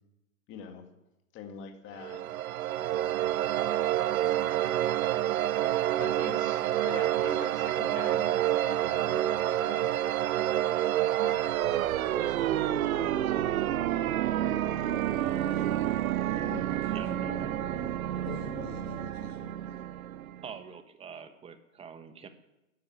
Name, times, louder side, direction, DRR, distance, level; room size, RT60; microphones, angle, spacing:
voice 1, 0.5-0.8 1.3-2.2 6.0-9.9 11.2-14.1 14.5-15.4, left 7 dB, 25° left, 4 dB, 1.9 m, -45 dB
sound 1, 2.0-20.6, right 13 dB, 75° right, 0.7 m, -29 dB
sound 2, 11.3-20.1, right 3 dB, 45° right, 4.1 m, -46 dB
voice 2, 15.4-15.8 16.3-19.8, left 5 dB, 90° left, -1 dB, 2.9 m, -45 dB
voice 3, 16.9-17.5 20.4-22.3, right 6 dB, 15° right, 9 dB, 1.2 m, -45 dB
12.0 x 10.0 x 8.6 m, 0.92 s
hypercardioid pair, 135°, 42 cm